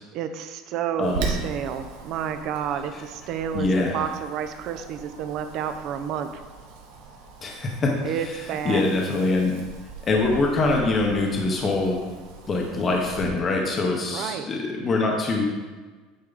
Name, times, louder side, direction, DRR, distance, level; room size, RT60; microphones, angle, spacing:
voice 1, 0.1-6.4 8.0-8.9 14.1-14.5, right 8 dB, 40° right, 8 dB, 0.5 m, -30 dB
voice 2, 1.0-1.4 3.5-4.0 7.4-7.9 8.6-9.5 10.0-12.0 12.5-15.4, left 3 dB, 20° left, 0 dB, 0.8 m, -23 dB
Wind, 1.0-13.3, right 6 dB, 80° right, 1.3 m, -39 dB
8.7 x 4.7 x 3.9 m, 1.3 s
cardioid pair, 175°, 0 cm